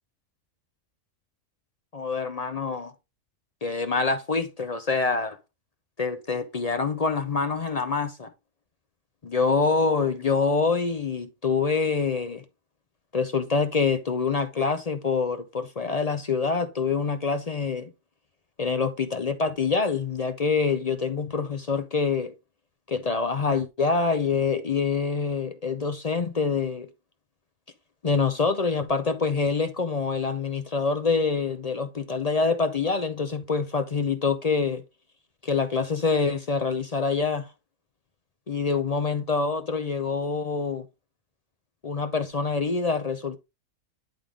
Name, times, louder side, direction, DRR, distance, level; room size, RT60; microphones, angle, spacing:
voice 1, 1.9-2.9 3.6-5.4 6.0-8.3 9.2-12.4 13.1-17.9 18.6-22.3 22.9-26.9 28.0-34.8 35.4-37.5 38.5-40.9 41.8-43.4, left 4 dB, 45° left, 0.5 m, -26 dB
10.5 x 3.5 x 3.7 m
omnidirectional pair, 1.4 m